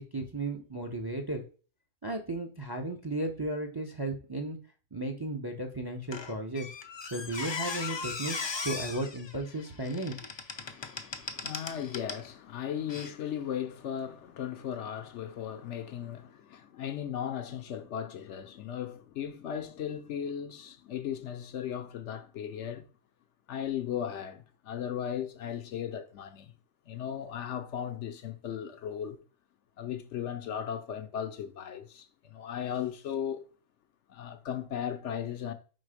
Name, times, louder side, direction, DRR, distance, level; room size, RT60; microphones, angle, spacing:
voice 1, 0.0-1.4 2.0-4.6 4.9-6.7 7.1-10.2, right 2 dB, 25° right, 0.5 m, -35 dB
Squeak, 6.1-12.3 12.9-13.1, left 4 dB, 35° left, 0.4 m, -38 dB
voice 2, 10.6-22.9 23.5-26.5 26.9-29.2 29.8-33.5 34.1-35.5, left 9 dB, 70° left, 0.9 m, -37 dB
4.8 x 4.0 x 4.9 m
omnidirectional pair, 1.3 m